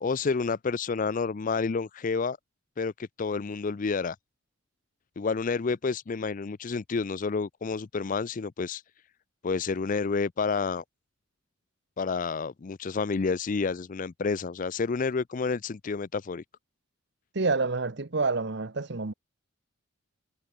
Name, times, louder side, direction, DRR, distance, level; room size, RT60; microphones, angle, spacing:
voice 1, 0.0-2.4 2.8-4.2 5.2-8.8 9.4-10.8 12.0-16.4, left 4 dB, 40° left, 0.4 m, -29 dB
voice 2, 17.3-19.1, right 3 dB, 55° right, 1.0 m, -28 dB
head